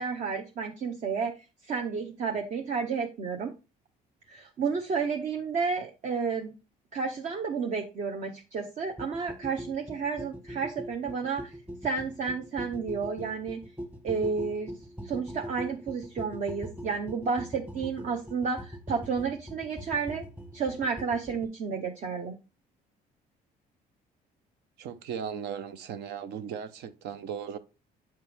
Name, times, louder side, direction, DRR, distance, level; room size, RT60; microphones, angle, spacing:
voice 1, 0.0-1.3 1.6-3.5 4.3-6.5 6.9-11.5 11.8-13.6 14.0-14.7 15.0-20.2 20.5-22.4, right 5 dB, 50° right, 0.8 m, -31 dB
sound 1, 9.0-21.5, equal, 10° right, 1.1 m, -42 dB
voice 2, 24.8-27.6, right 8 dB, 75° right, 0.8 m, -37 dB
7.6 x 4.5 x 3.4 m
cardioid pair, 110°, 17 cm